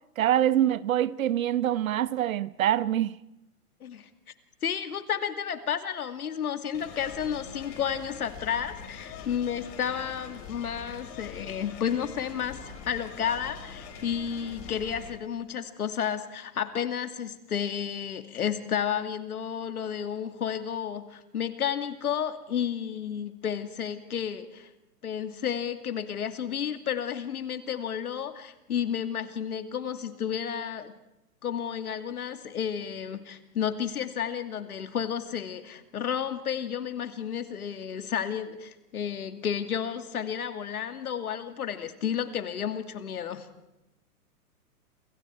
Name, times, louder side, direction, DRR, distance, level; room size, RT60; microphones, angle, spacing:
voice 1, 0.2-3.2, right 11 dB, 60° right, 1.0 m, -25 dB
voice 2, 4.6-24.7 25.0-30.9 31.4-43.5, left 8 dB, 70° left, 2.5 m, -32 dB
sound 1, 6.7-15.1, left 6 dB, 35° left, 4.9 m, -44 dB
30.0 x 27.5 x 4.7 m
hypercardioid pair, 120°, 46 cm